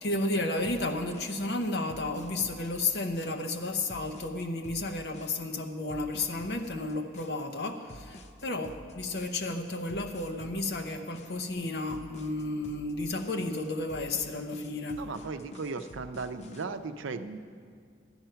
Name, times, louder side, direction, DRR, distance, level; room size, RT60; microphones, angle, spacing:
voice 1, 0.0-15.1, left 2 dB, 55° left, 5 dB, 0.8 m, -32 dB
sound 1, 0.6-16.6, left 1 dB, 35° left, 0.5 m, -49 dB
voice 2, 15.0-17.4, right 4 dB, 85° right, 9 dB, 0.5 m, -36 dB
12.0 x 9.0 x 5.7 m, 2.1 s
head